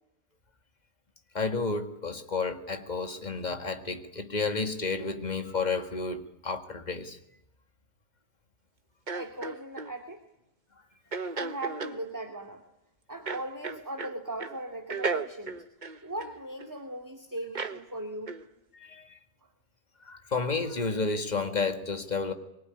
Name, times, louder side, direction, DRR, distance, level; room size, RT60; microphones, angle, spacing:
voice 1, 1.3-7.2 18.8-19.1 20.1-22.3, left 4 dB, 40° left, 2.1 m, -31 dB
voice 2, 9.1-10.2 11.3-12.6 13.1-15.6 16.0-18.4, right 1 dB, 15° right, 2.3 m, -38 dB
sound 1, 9.1-9.9 11.1-12.0 13.3-14.1 14.4-14.6 14.9-16.7 17.5-17.8 18.3-18.4, right 4 dB, 40° right, 1.4 m, -34 dB
24.5 x 23.0 x 9.9 m
omnidirectional pair, 1.2 m